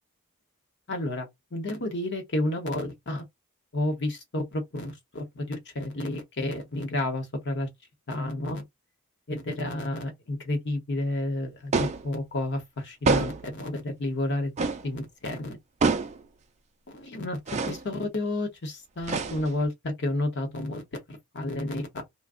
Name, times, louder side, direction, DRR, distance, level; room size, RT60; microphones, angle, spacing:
voice 1, 0.9-3.2 3.7-7.7 8.1-8.6 9.3-14.5 14.8-15.6 16.9-17.4 17.6-22.0, left 1 dB, 50° left, 1.0 m, -31 dB
sound 1, 11.7-12.1 13.0-13.5 14.6-14.9 15.8-16.2 17.5-17.8 19.0-19.7, right 4 dB, 30° right, 0.4 m, -26 dB
2.5 x 2.1 x 3.6 m
head